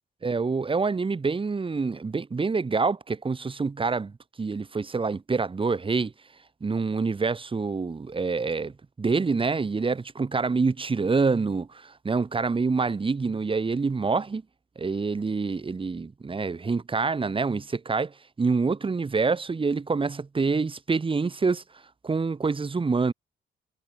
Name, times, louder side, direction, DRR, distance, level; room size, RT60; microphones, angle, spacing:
voice 1, 0.2-6.1 6.6-14.4 14.8-21.6 22.0-23.1, right 4 dB, 25° right, 1.7 m, -26 dB
cardioid pair, 90°, 20 cm